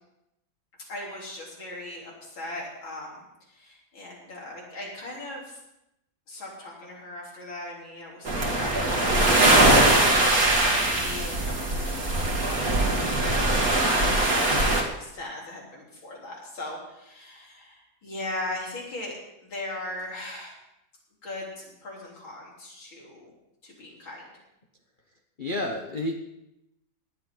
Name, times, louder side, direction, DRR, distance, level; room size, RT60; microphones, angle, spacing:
voice 1, 0.9-5.6 6.3-11.7 12.1-20.6 21.2-23.3 23.6-24.3, left 1 dB, 80° left, -3 dB, 4.5 m, -39 dB
sound 1, 8.3-14.8, right 1 dB, 45° right, 2.2 m, -21 dB
voice 2, 25.4-26.1, left 1 dB, 35° left, 2 dB, 0.9 m, -29 dB
17.5 x 11.5 x 3.9 m, 0.87 s
omnidirectional pair, 2.1 m